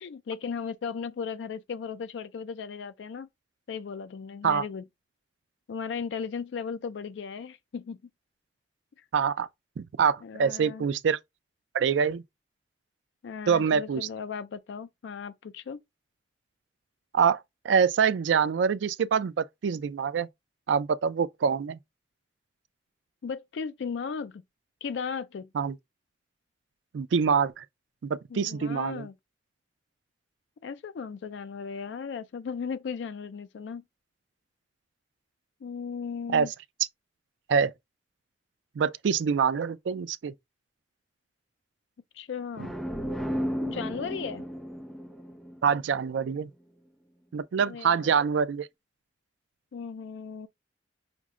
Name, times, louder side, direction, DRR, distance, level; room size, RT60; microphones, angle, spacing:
voice 1, 0.0-3.3 3.7-4.8 5.7-8.0 9.0-9.1 10.2-10.9 13.2-15.8 23.2-24.4 24.8-25.5 28.3-29.1 30.6-33.8 35.6-36.5 42.1-42.7 43.6-44.5 47.6-48.1 49.7-50.5, left 6 dB, 75° left, 0.4 m, -36 dB
voice 2, 9.1-9.5 9.8-11.2 11.7-12.2 13.5-14.1 17.1-20.3 20.7-21.8 25.5-25.8 26.9-27.6 28.0-29.1 36.3-36.5 37.5-37.7 38.8-40.3 45.6-46.5 47.3-48.7, right 6 dB, 85° right, 0.4 m, -25 dB
sound 1, 42.6-46.2, equal, ahead, 0.5 m, -34 dB
6.0 x 2.1 x 3.6 m
head